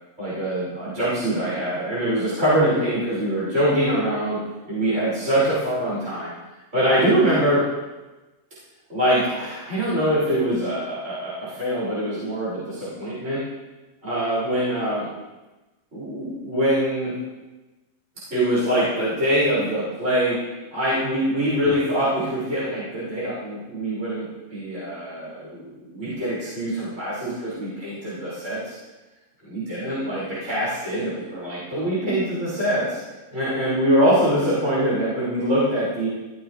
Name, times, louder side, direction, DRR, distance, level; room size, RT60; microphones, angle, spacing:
voice 1, 0.2-4.4 4.7-6.3 6.7-7.6 8.9-13.4 14.0-15.1 15.9-17.1 18.3-20.4 20.7-28.7 29.4-33.0 33.3-36.1, equal, 15° right, -11 dB, 5.8 m, -23 dB
16.5 x 15.0 x 3.3 m, 1.1 s
omnidirectional pair, 4.5 m